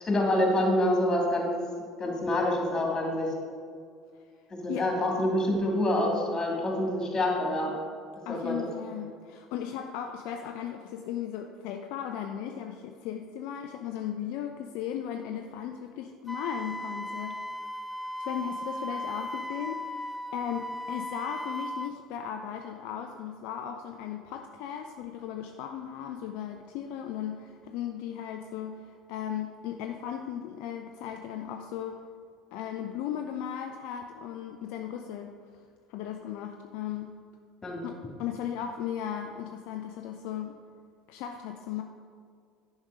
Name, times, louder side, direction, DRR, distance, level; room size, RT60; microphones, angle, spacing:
voice 1, 0.0-1.5 2.0-3.3 4.5-7.7 8.3-8.6 37.6-37.8, left 1 dB, 20° left, 0 dB, 2.5 m, -26 dB
voice 2, 8.3-17.5 18.2-32.0 32.5-35.3 35.9-37.1 37.8-40.5 41.1-41.8, left 9 dB, 55° left, 4 dB, 0.5 m, -36 dB
Wind instrument woodwind instrument, 16.3-21.9, left 1 dB, ahead, 0.4 m, -37 dB
10.5 x 5.4 x 4.8 m, 2.2 s
figure-of-eight pair, 65°, 2 cm